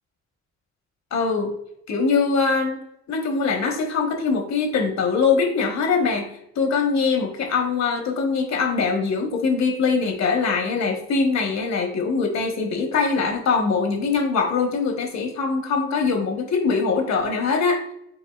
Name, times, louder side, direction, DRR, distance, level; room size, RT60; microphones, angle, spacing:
voice 1, 1.1-1.6 1.9-2.8 3.1-17.8, left 4 dB, 65° left, 3 dB, 1.2 m, -22 dB
5.5 x 4.0 x 2.4 m, 0.77 s
cardioid pair, 90°, 30 cm